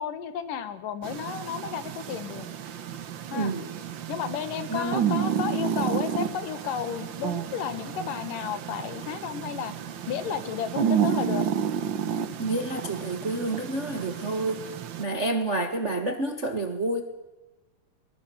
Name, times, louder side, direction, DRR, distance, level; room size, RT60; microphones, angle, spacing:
voice 1, 0.0-2.5 3.3-3.5 4.1-9.7 10.1-11.5, left 8 dB, 85° left, 11 dB, 3.3 m, -32 dB
sound 1, 1.0-15.0, right 8 dB, 70° right, 1.1 m, -31 dB
voice 2, 3.3-3.6 4.7-5.1 12.4-14.7 15.0-17.0, right 2 dB, 45° right, 6 dB, 0.9 m, -29 dB
23.5 x 21.0 x 7.0 m, 1.1 s
omnidirectional pair, 3.7 m